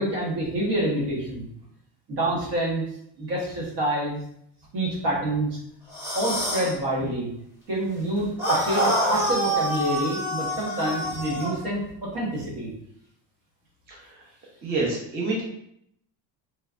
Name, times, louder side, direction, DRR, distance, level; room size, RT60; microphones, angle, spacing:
voice 1, 0.0-1.5 2.1-2.8 3.2-4.2 4.7-5.6 6.1-7.3 7.7-12.7, right 1 dB, 65° right, -5 dB, 1.5 m, -27 dB
sound 1, 5.9-6.7 8.4-11.5, right 1 dB, 5° right, 1.1 m, -26 dB
voice 2, 13.9-14.2 14.6-15.4, right 2 dB, 25° right, -4 dB, 0.6 m, -28 dB
3.1 x 3.1 x 2.4 m, 0.73 s
cardioid pair, 160°, 44 cm